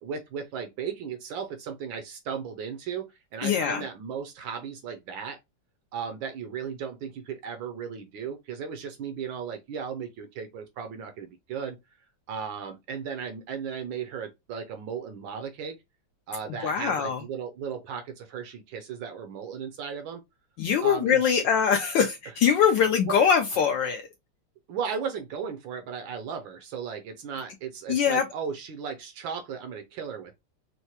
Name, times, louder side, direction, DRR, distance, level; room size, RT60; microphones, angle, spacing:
voice 1, 0.0-5.4 5.9-11.8 12.3-15.8 16.3-20.2 20.8-21.5 23.1-23.2 24.7-30.3, right 6 dB, 75° right, 1.2 m, -36 dB
voice 2, 3.4-3.8 16.5-17.2 20.6-24.0 27.9-28.2, left 7 dB, 80° left, 1.0 m, -23 dB
4.5 x 2.1 x 2.7 m
omnidirectional pair, 2.4 m